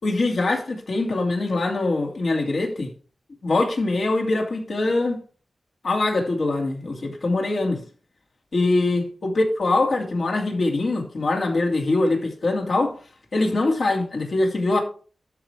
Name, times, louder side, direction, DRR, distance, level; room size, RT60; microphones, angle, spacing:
voice 1, 0.0-2.9 3.4-5.2 5.8-7.8 8.5-13.0 13.3-14.8, left 2 dB, 65° left, 2.4 m, -23 dB
12.5 x 4.9 x 4.6 m
wide cardioid pair, 105°, 0 cm